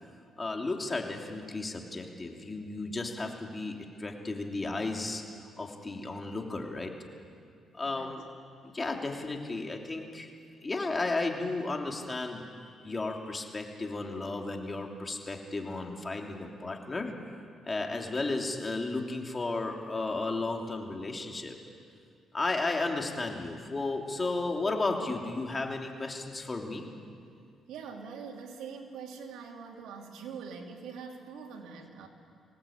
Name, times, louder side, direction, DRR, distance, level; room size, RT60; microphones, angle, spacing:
voice 1, 0.4-5.2 5.6-6.9 7.7-8.2 8.6-10.3 10.6-17.1 17.6-21.5 22.3-26.9, left 3 dB, 25° left, 2 dB, 3.1 m, -34 dB
voice 2, 27.7-32.1, right 6 dB, 85° right, 2 dB, 2.9 m, -43 dB
24.0 x 18.5 x 8.8 m, 2.3 s
cardioid pair, 90°, 0 cm